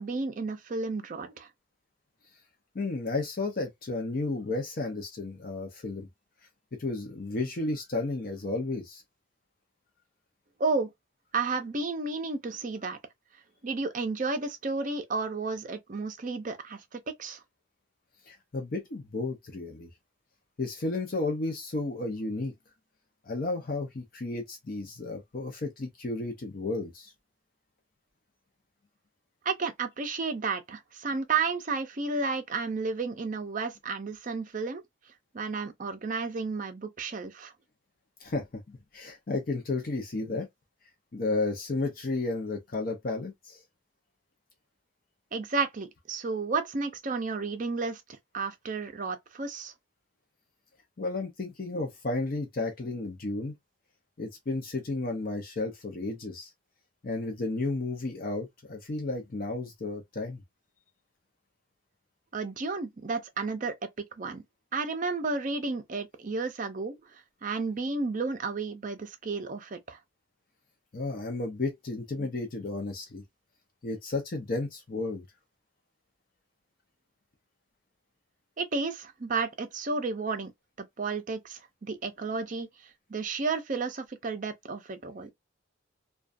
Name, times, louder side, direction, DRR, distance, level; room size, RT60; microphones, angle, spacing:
voice 1, 0.0-1.5 10.6-10.9 11.3-13.0 13.6-17.4 29.4-34.8 35.3-37.5 45.3-48.0 48.3-49.7 62.3-64.4 64.7-70.0 78.6-80.5 80.8-82.7 83.1-85.3, right 4 dB, 40° right, 0.5 m, -32 dB
voice 2, 2.7-6.1 6.8-9.0 18.3-19.9 20.6-22.5 23.3-27.1 38.2-40.5 41.1-43.6 51.0-53.5 54.2-56.5 57.0-60.4 70.9-73.2 73.8-75.2, left 2 dB, 45° left, 0.5 m, -33 dB
2.4 x 2.2 x 2.4 m
head